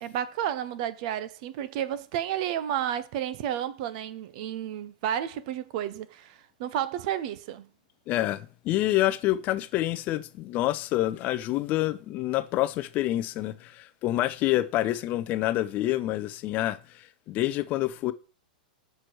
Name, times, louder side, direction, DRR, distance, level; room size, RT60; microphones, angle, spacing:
voice 1, 0.0-7.7, right 10 dB, 50° right, 0.7 m, -31 dB
voice 2, 8.1-18.1, left 15 dB, 35° left, 0.5 m, -27 dB
6.7 x 6.1 x 4.5 m
hypercardioid pair, 135°, 5 cm